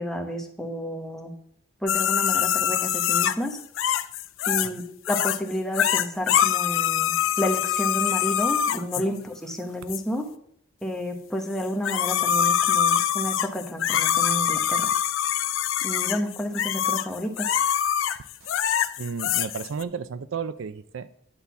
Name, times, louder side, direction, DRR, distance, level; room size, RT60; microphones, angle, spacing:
voice 1, 0.0-1.3 1.8-3.6 4.5-10.3 10.8-14.9 15.8-17.5, equal, ahead, 1.0 m, -30 dB
sound 1, 1.9-4.8 5.1-5.4 5.7-9.0 9.9-10.0 11.6-19.8, left 9 dB, 75° left, 0.4 m, -24 dB
voice 2, 19.0-21.2, right 5 dB, 80° right, 0.5 m, -33 dB
10.5 x 4.0 x 7.0 m
head